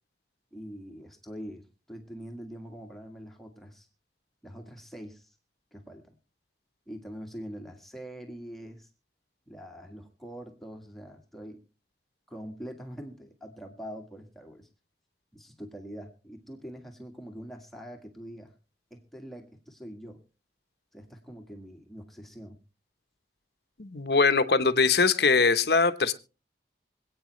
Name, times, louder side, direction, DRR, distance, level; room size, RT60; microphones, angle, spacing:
voice 1, 0.5-3.9 4.4-5.4 5.7-6.2 6.9-8.9 9.5-11.6 12.3-14.7 15.3-18.5 18.9-20.2 20.9-22.6, equal, ahead, 1.6 m, -44 dB
voice 2, 23.8-26.1, left 4 dB, 65° left, 1.0 m, -22 dB
26.0 x 8.8 x 3.2 m
head